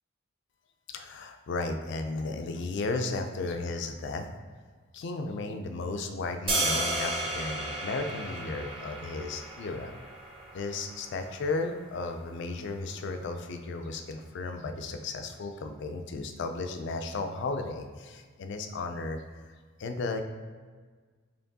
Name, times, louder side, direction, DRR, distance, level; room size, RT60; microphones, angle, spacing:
voice 1, 0.9-4.3 4.9-9.9 10.5-20.2, left 3 dB, 55° left, 6 dB, 0.3 m, -34 dB
sound 1, 6.5-12.6, right 2 dB, 25° right, 0.6 m, -34 dB
4.3 x 3.0 x 2.7 m, 1.5 s
head